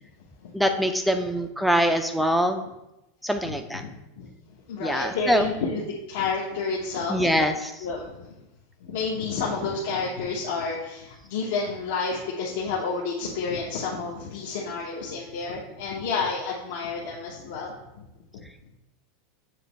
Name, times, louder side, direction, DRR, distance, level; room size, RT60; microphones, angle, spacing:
voice 1, 0.5-2.6 3.2-3.8 4.8-5.5 7.1-7.7, equal, ahead, 6 dB, 0.4 m, -23 dB
voice 2, 3.4-3.9 4.2-4.3 4.7-5.8 6.1-7.4 7.8-8.0 8.8-17.8, left 4 dB, 65° left, -4 dB, 1.1 m, -30 dB
7.5 x 3.0 x 6.1 m, 0.93 s
supercardioid pair, 175°, 0 cm